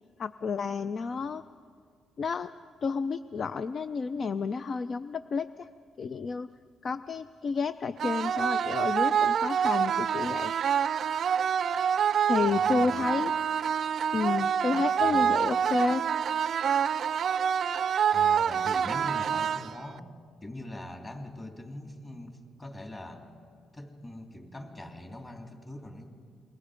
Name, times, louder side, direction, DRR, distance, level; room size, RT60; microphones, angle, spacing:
voice 1, 0.2-1.4 2.2-2.5 2.8-5.7 6.0-6.5 6.8-10.5 12.3-13.3 14.1-16.0, left 5 dB, 45° left, 12 dB, 0.5 m, -30 dB
sound 1, 8.0-20.0, right 8 dB, 60° right, 0.4 m, -27 dB
voice 2, 12.4-13.1 15.0-15.5 18.1-20.1 20.4-23.2 23.7-26.0, left 1 dB, 25° left, 3 dB, 3.2 m, -42 dB
28.0 x 22.0 x 5.1 m, 2.1 s
cardioid pair, 90°, 0 cm